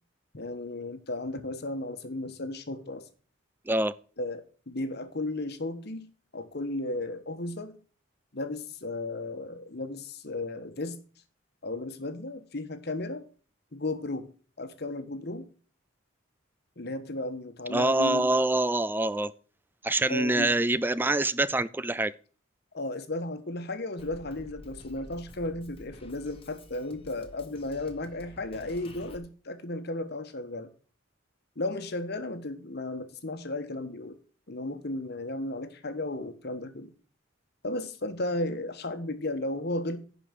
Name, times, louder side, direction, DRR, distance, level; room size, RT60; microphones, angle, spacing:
voice 1, 0.3-3.1 4.2-6.1 6.3-7.8 8.3-11.0 11.6-13.2 13.7-14.3 14.6-15.5 16.8-18.3 20.1-20.5 22.7-30.7 31.6-34.2 34.5-36.9 37.6-40.0, left 2 dB, 50° left, 1.3 m, -34 dB
voice 2, 17.7-19.3 19.8-22.1, right 2 dB, 10° right, 0.3 m, -25 dB
Drum kit, 24.0-29.2, left 1 dB, 25° left, 1.4 m, -50 dB
11.0 x 5.1 x 6.4 m
head